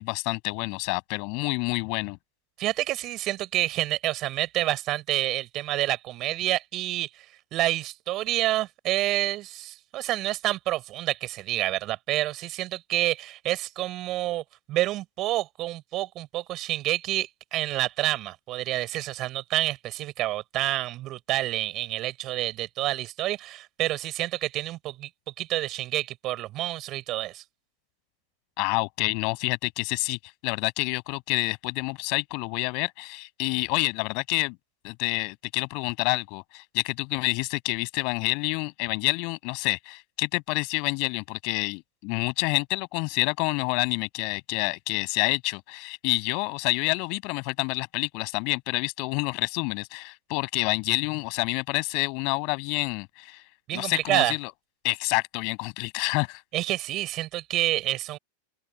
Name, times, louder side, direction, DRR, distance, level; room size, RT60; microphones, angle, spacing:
voice 1, 0.0-2.2 28.6-34.6 34.8-53.4 53.7-54.5 54.8-56.4, left 33 dB, 45° left, 7.3 m, -28 dB
voice 2, 2.6-7.3 7.5-25.1 25.4-27.4 53.7-54.3 56.5-58.2, right 16 dB, 35° right, 6.3 m, -28 dB
open air
figure-of-eight pair, 90°, 0 cm